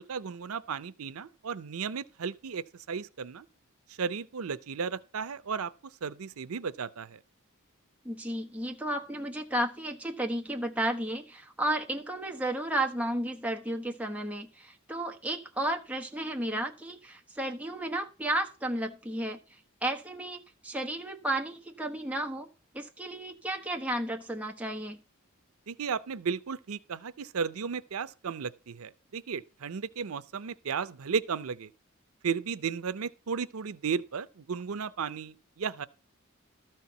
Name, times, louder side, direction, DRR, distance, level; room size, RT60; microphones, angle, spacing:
voice 1, 0.0-3.4 4.0-5.7 6.0-7.2 25.7-31.7 32.2-35.9, right 6 dB, 90° right, 0.6 m, -34 dB
voice 2, 8.0-19.4 19.8-22.5 22.7-25.0, right 1 dB, 5° right, 1.2 m, -33 dB
13.0 x 4.5 x 6.8 m
head